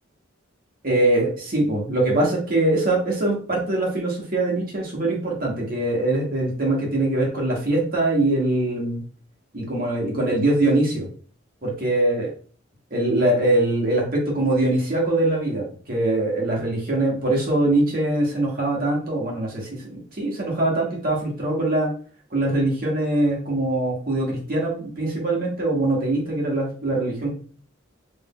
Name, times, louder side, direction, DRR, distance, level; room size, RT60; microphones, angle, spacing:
voice 1, 0.8-9.0 9.5-11.1 11.6-12.3 12.9-21.9 22.3-27.3, right 2 dB, 50° right, -2 dB, 1.4 m, -22 dB
3.3 x 2.7 x 3.7 m, 0.44 s
head